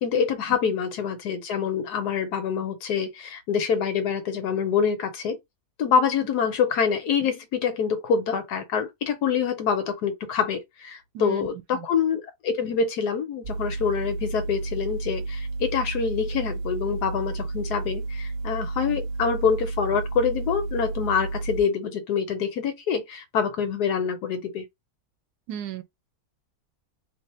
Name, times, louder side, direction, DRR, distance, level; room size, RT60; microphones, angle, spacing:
voice 1, 0.0-5.4 5.8-24.6, left 6 dB, 85° left, 1.4 m, -26 dB
voice 2, 11.1-11.5 11.7-11.9 25.5-25.8, right 9 dB, 80° right, 1.2 m, -35 dB
sound 1, 13.4-21.6, right 3 dB, 60° right, 0.8 m, -32 dB
3.1 x 2.1 x 4.2 m
omnidirectional pair, 1.7 m